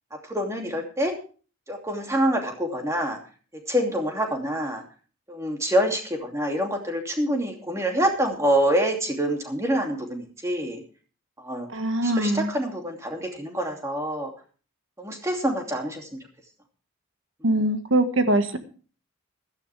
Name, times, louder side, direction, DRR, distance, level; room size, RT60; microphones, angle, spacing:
voice 1, 0.2-1.1 1.7-3.2 3.7-4.8 5.3-10.8 11.4-11.7 12.0-14.3 15.0-16.2 17.4-17.6, equal, 15° right, 2 dB, 2.7 m, -26 dB
voice 2, 11.7-12.5 17.4-18.6, right 1 dB, 65° right, 8 dB, 1.7 m, -22 dB
16.0 x 13.0 x 3.4 m, 0.39 s
head